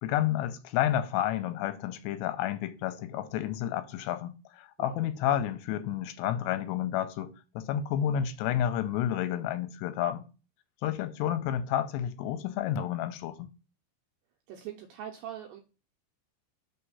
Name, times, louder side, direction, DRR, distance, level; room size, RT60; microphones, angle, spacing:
voice 1, 0.0-10.2 10.8-13.4, left 11 dB, 90° left, 2.8 m, -30 dB
voice 2, 14.5-15.6, right 10 dB, 85° right, 2.0 m, -42 dB
5.8 x 3.4 x 5.5 m
omnidirectional pair, 4.7 m